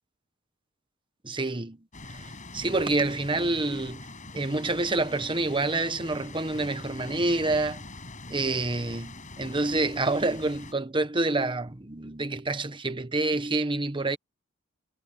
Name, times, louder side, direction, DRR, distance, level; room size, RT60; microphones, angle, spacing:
voice 1, 1.2-1.8 2.1-4.1 4.3-7.8 8.3-14.2, right 2 dB, 25° right, 1.2 m, -27 dB
sound 1, 1.9-10.7, left 2 dB, 35° left, 6.9 m, -43 dB
head